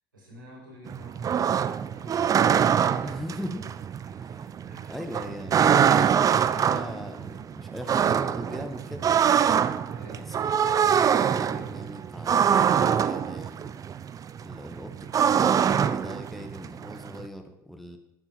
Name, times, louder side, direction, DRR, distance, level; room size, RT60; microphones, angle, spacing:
voice 1, 0.1-1.5 1.9-2.4 3.0-3.2 4.1-5.1 9.9-10.3, equal, 90° right, -5 dB, 5.1 m, -49 dB
sound 1, 0.9-17.3, right 8 dB, 35° right, 0.7 m, -24 dB
voice 2, 3.0-3.7 4.2-4.5 4.9-9.5 10.2-13.8 14.4-18.0, equal, ahead, 5 dB, 1.7 m, -40 dB
12.5 x 8.9 x 6.3 m, 0.90 s
figure-of-eight pair, 65°, 10 cm